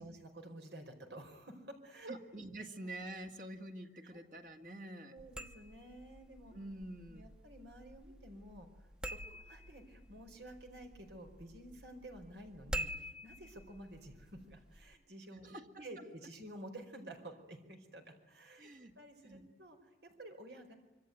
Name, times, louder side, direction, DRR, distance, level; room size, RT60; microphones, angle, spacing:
voice 1, 0.0-2.2 4.0-4.2 4.6-4.7 5.1-6.5 7.1-18.7 18.9-20.8, right 1 dB, 85° right, 5 dB, 4.7 m, -52 dB
voice 2, 2.1-5.1 6.5-7.3 15.4-16.0 18.6-19.5, right 1 dB, 50° right, 4 dB, 2.2 m, -47 dB
sound 1, 5.2-14.9, equal, 5° right, 0.9 m, -48 dB
26.0 x 24.5 x 9.4 m, 0.95 s
head